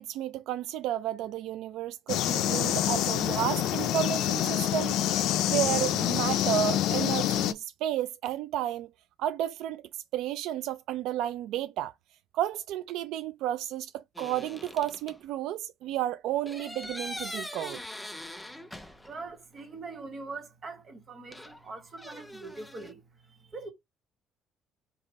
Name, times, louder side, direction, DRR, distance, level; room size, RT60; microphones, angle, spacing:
voice 1, 0.0-8.9 9.2-11.9 12.3-17.8, right 12 dB, 80° right, 0.3 m, -32 dB
sound 1, 2.1-7.5, left 12 dB, 80° left, 0.4 m, -27 dB
sound 2, 14.2-15.2 16.5-19.3 19.6-19.7 21.3-22.9, left 1 dB, 5° left, 0.5 m, -42 dB
voice 2, 19.1-23.0 23.3-23.7, right 3 dB, 30° right, 1.3 m, -42 dB
5.3 x 2.5 x 3.9 m
cardioid pair, 170°, 0 cm